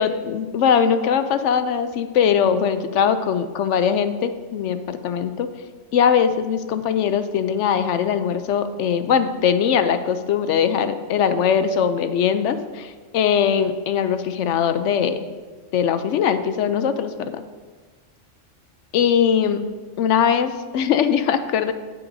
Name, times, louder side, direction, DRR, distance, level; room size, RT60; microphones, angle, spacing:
voice 1, 0.0-5.5 5.9-15.2 15.7-17.3 18.9-19.6 20.0-21.7, left 7 dB, 75° left, 10 dB, 0.9 m, -21 dB
17.0 x 5.7 x 2.7 m, 1.4 s
omnidirectional pair, 1.3 m